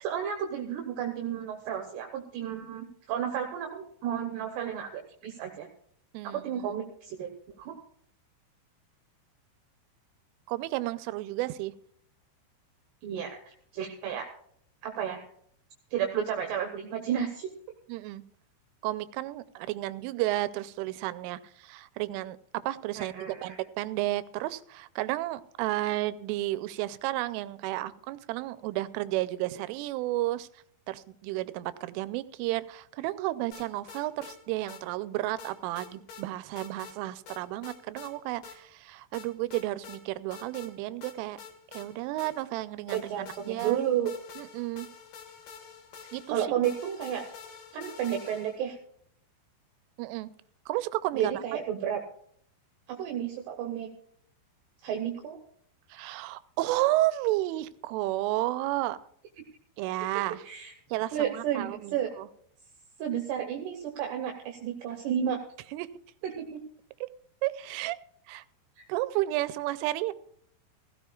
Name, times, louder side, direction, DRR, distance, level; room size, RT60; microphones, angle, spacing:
voice 1, 0.0-5.7 6.2-7.3 7.6-7.7 13.0-14.3 14.8-15.2 15.9-17.5 23.0-23.6 42.9-44.1 46.0-47.2 47.7-48.8 51.1-52.0 52.9-53.9 54.8-55.4 60.4-60.7 61.1-62.1 63.0-65.4 66.2-66.6, right 9 dB, 70° right, 3 dB, 2.9 m, -32 dB
voice 2, 6.1-6.7 10.5-11.7 17.9-18.2 18.8-30.5 30.9-41.4 41.7-43.8 44.4-44.9 46.1-46.5 50.0-50.3 50.7-51.6 55.9-59.0 59.8-60.4 60.9-62.3 65.7-65.9 67.0-67.1 67.4-68.0 68.3-68.4 68.9-70.1, right 16 dB, 90° right, 15 dB, 3.1 m, -32 dB
sound 1, 33.5-34.4 34.7-34.8 35.4-36.3 36.6-37.0 37.3-38.1 38.4-38.6 39.1-40.0 40.3-40.7 41.0-42.6 42.9-48.7, left 6 dB, 60° left, 2.7 m, -47 dB
16.5 x 16.0 x 2.4 m, 0.65 s
omnidirectional pair, 5.5 m